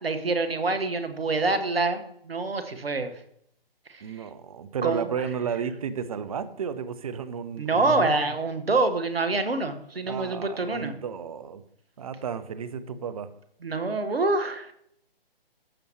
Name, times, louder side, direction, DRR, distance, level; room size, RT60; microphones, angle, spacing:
voice 1, 0.0-3.1 3.9-4.0 4.8-5.1 7.6-10.9 13.6-14.7, right 3 dB, 75° right, 9 dB, 1.6 m, -26 dB
voice 2, 4.0-8.2 10.1-11.6 12.0-13.3, right 7 dB, 35° right, 13 dB, 0.8 m, -33 dB
14.5 x 6.9 x 3.1 m, 0.69 s
figure-of-eight pair, 140°, 30 cm